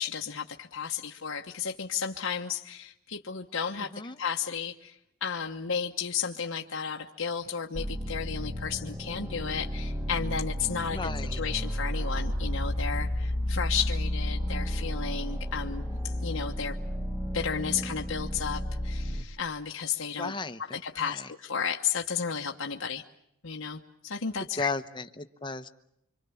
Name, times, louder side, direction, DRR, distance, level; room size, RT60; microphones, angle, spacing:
voice 1, 0.0-3.9 4.2-16.8 17.3-20.3 20.7-23.0 23.4-24.7, left 6 dB, 65° left, 2 dB, 1.2 m, -33 dB
sound 1, 7.7-19.2, equal, 15° right, 1.7 m, -32 dB
voice 2, 10.9-11.4 15.9-16.0 20.2-21.3 24.6-25.7, left 3 dB, 20° left, 10 dB, 1.0 m, -35 dB
26.5 x 25.5 x 7.1 m, 0.79 s
head